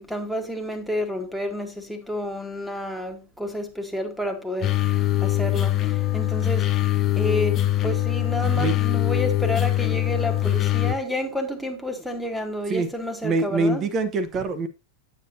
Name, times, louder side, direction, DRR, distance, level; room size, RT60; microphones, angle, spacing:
voice 1, 0.0-6.9 7.1-13.8, left 1 dB, ahead, 1.7 m, -30 dB
sound 1, 4.6-11.0, left 13 dB, 30° left, 0.7 m, -22 dB
voice 2, 13.2-14.7, right 3 dB, 30° right, 1.1 m, -24 dB
9.0 x 7.3 x 2.7 m
figure-of-eight pair, 90°, 0 cm